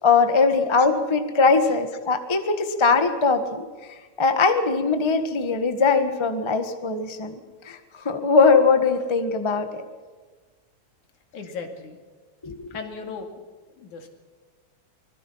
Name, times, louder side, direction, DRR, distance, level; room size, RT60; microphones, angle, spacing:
voice 1, 0.0-7.3 7.6-9.8 12.4-12.8, left 4 dB, 20° left, 7 dB, 0.7 m, -21 dB
voice 2, 11.3-12.0 12.7-13.3 13.7-14.1, left 4 dB, 85° left, 4 dB, 3.8 m, -36 dB
24.5 x 21.5 x 5.7 m, 1.4 s
omnidirectional pair, 3.4 m